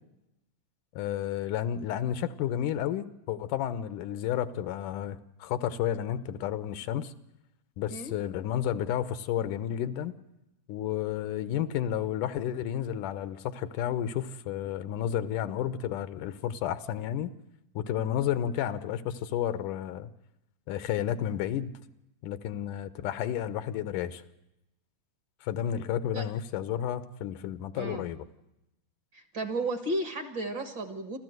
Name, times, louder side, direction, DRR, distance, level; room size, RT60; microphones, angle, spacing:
voice 1, 1.0-7.1 7.8-10.1 10.7-17.3 17.8-20.1 20.7-21.7 22.2-24.2 25.4-28.3, left 10 dB, 85° left, 13 dB, 2.5 m, -31 dB
voice 2, 29.1-31.2, right 2 dB, 45° right, 8 dB, 1.8 m, -33 dB
28.5 x 13.0 x 7.9 m, 0.90 s
omnidirectional pair, 3.6 m